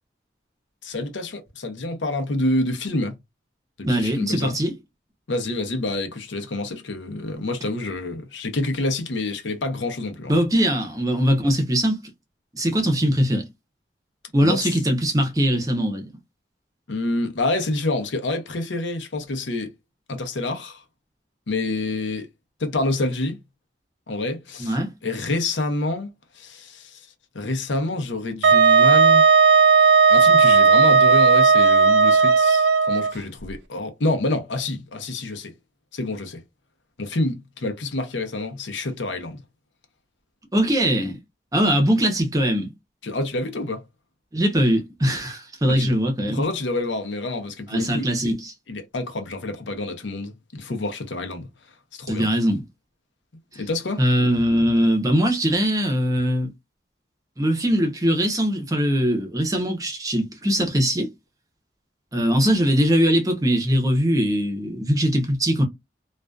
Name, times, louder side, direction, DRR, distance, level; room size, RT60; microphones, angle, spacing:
voice 1, 0.8-3.2 3.8-4.6 5.3-10.3 14.4-14.8 16.9-19.7 20.1-20.8 21.5-22.3 22.6-23.4 24.1-24.8 25.0-27.1 27.3-29.2 30.1-35.5 35.9-36.4 37.0-39.4 43.0-43.9 45.7-45.9 46.3-48.3 48.7-51.5 51.9-52.3 53.6-54.0, left 2 dB, 80° left, 0.7 m, -27 dB
voice 2, 3.8-4.7 10.3-12.1 12.5-13.4 14.3-16.1 24.6-24.9 40.5-41.2 41.5-42.7 44.3-46.5 47.7-48.5 52.1-52.6 54.0-56.5 57.4-61.1 62.1-65.6, equal, 20° right, 0.6 m, -21 dB
Wind instrument woodwind instrument, 28.4-33.1, right 5 dB, 70° right, 0.4 m, -15 dB
2.5 x 2.2 x 2.2 m
head